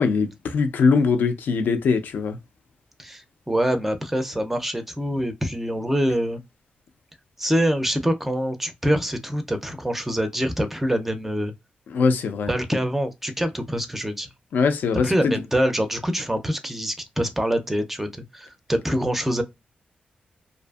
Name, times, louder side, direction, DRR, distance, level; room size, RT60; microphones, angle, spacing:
voice 1, 0.0-2.4 11.9-12.5 14.5-15.3, left 5 dB, 80° left, 0.4 m, -21 dB
voice 2, 3.0-6.4 7.4-11.5 12.5-14.3 15.0-18.1 18.3-19.4, equal, 10° right, 0.4 m, -25 dB
2.6 x 2.4 x 2.3 m
wide cardioid pair, 150°, 3 cm